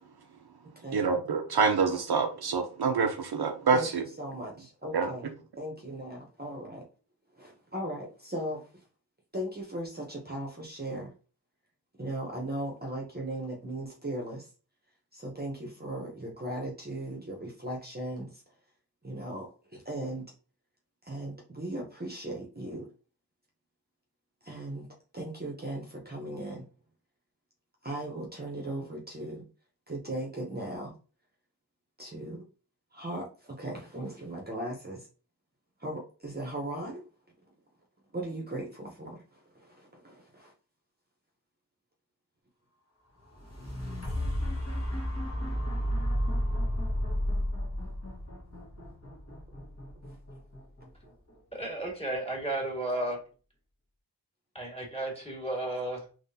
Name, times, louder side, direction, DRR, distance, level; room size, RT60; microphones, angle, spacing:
voice 1, 0.9-4.0 4.9-5.1, right 5 dB, 65° right, 0.6 m, -26 dB
voice 2, 4.2-5.3 5.6-6.8 7.3-8.7 9.3-11.1 12.0-14.5 15.1-18.4 19.0-20.3 21.0-22.9 24.4-24.9 25.1-26.7 27.8-29.5 29.9-30.9 32.0-32.4 32.9-35.1 35.8-37.0 38.1-40.5 49.3-50.0, right 1 dB, 25° right, 0.9 m, -38 dB
sound 1, 43.2-51.3 51.8-51.9, equal, 35° left, 1.5 m, -32 dB
voice 3, 51.5-53.2 54.5-56.0, right 1 dB, 15° left, 1.9 m, -33 dB
3.6 x 3.0 x 2.7 m
cardioid pair, 50°, 42 cm